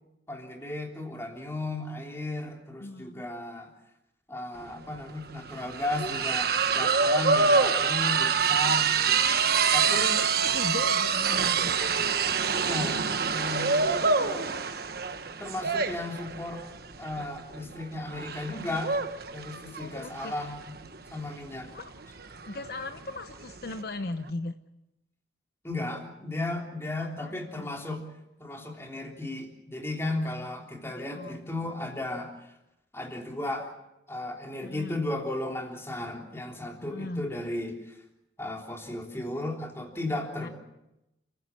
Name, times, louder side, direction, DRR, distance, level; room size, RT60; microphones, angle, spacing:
voice 1, 0.3-3.7 4.3-8.9 9.7-10.1 12.5-14.5 15.4-16.6 17.0-18.9 19.3-20.7 21.1-21.7 25.6-28.0 28.4-32.3 32.9-33.7 34.1-38.0 38.4-40.5, left 2 dB, 15° left, 1 dB, 3.4 m, -35 dB
voice 2, 2.8-3.2 8.9-11.8 13.7-14.7 19.6-20.5 21.6-21.9 22.5-24.5 27.2-27.7 31.1-31.5 34.6-35.1 36.8-37.2 40.4-40.5, left 2 dB, 60° left, 9 dB, 0.9 m, -39 dB
sound 1, 4.6-4.7 4.9-23.8, right 5 dB, 60° right, 1.2 m, -26 dB
29.0 x 15.5 x 7.5 m, 0.92 s
head